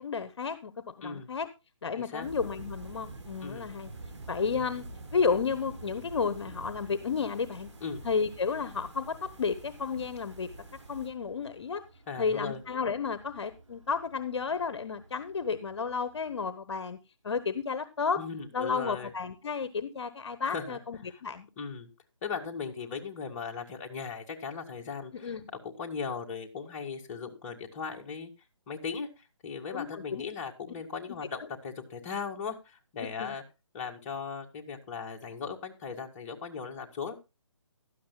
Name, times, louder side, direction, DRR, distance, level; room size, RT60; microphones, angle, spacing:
voice 1, 0.0-1.5 1.8-3.9 4.3-4.8 5.1-7.7 8.0-10.5 10.9-11.8 12.2-17.0 17.2-18.2 18.5-21.5 25.1-25.5 29.7-30.2 33.2-33.3, left 5 dB, 60° left, 13 dB, 1.1 m, -32 dB
voice 2, 2.0-2.3 3.4-3.7 7.8-8.0 12.1-12.6 18.2-19.1 20.4-20.8 21.1-21.2 21.6-21.9 22.2-25.3 25.6-28.3 28.7-29.1 29.4-33.4 33.7-37.1, left 5 dB, 30° left, 1 dB, 1.9 m, -38 dB
sound 1, 2.2-11.1, right 2 dB, 65° right, 5.2 m, -46 dB
sound 2, 2.7-16.4, right 2 dB, 90° right, 7.1 m, -57 dB
16.0 x 12.0 x 2.3 m, 0.26 s
figure-of-eight pair, 150°, 16 cm